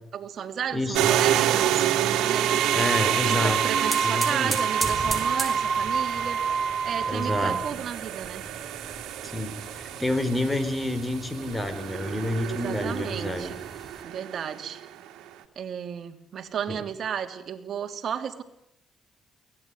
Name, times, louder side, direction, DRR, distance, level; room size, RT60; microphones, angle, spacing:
voice 1, 0.1-1.9 2.2-2.7 3.0-8.5 12.4-13.6 14.0-14.8 15.6-18.4, right 8 dB, 60° right, 6 dB, 2.8 m, -33 dB
voice 2, 0.7-1.1 2.7-4.5 7.1-7.6 9.3-13.5 16.7-16.8, left 1 dB, 10° left, 11 dB, 4.3 m, -29 dB
sound 1, 0.9-15.1, right 12 dB, 90° right, 2.3 m, -29 dB
sound 2, 1.3-1.8 2.1-7.7, right 5 dB, 40° right, 0.8 m, -28 dB
sound 3, 3.6-14.0, right 2 dB, 15° right, 5.3 m, -38 dB
23.5 x 18.5 x 9.7 m, 0.77 s
cardioid pair, 90°, 0 cm